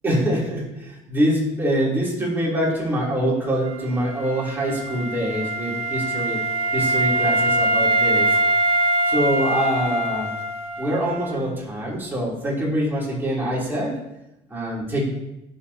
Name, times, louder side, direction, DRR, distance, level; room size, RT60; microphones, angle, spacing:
voice 1, 0.0-6.4 6.7-8.4 9.0-10.4 10.8-13.9 14.5-15.0, right 1 dB, 15° right, -5 dB, 3.2 m, -24 dB
Wind instrument woodwind instrument, 3.6-11.4, right 2 dB, 55° right, 1.0 m, -23 dB
16.5 x 6.5 x 2.8 m, 0.91 s
cardioid pair, 125°, 12 cm